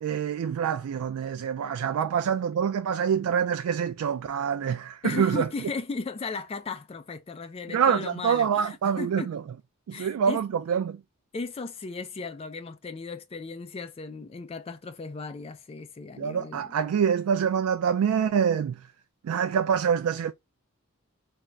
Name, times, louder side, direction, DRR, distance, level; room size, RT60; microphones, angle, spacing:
voice 1, 0.0-5.5 7.7-9.2 9.9-11.0 16.2-18.8 19.2-20.3, right 7 dB, 85° right, 0.3 m, -26 dB
voice 2, 5.0-9.3 9.9-10.4 11.3-16.7, left 4 dB, 25° left, 0.3 m, -36 dB
3.4 x 2.0 x 2.5 m
head